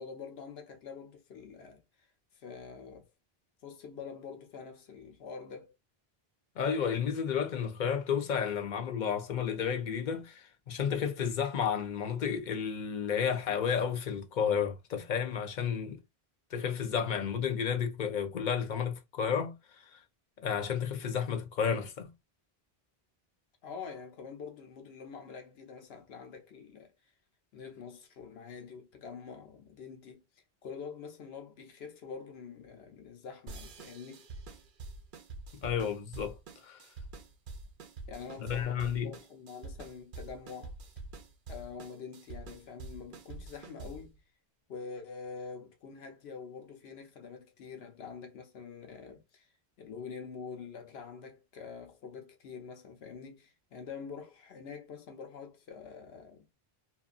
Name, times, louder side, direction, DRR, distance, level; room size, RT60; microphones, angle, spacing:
voice 1, 0.0-1.8 2.4-3.1 3.6-5.7 23.6-26.9 27.5-30.2 30.6-34.3 38.1-40.7 41.5-44.1 44.7-49.5 49.8-56.5, left 5 dB, 85° left, 1.0 m, -46 dB
voice 2, 6.6-16.0 16.5-19.5 19.9-20.0 20.4-22.1 35.6-36.4 36.6-36.8 38.4-39.1, left 7 dB, 55° left, 0.7 m, -32 dB
sound 1, 33.5-44.1, right 3 dB, 60° right, 0.7 m, -46 dB
2.6 x 2.5 x 2.3 m
omnidirectional pair, 1.0 m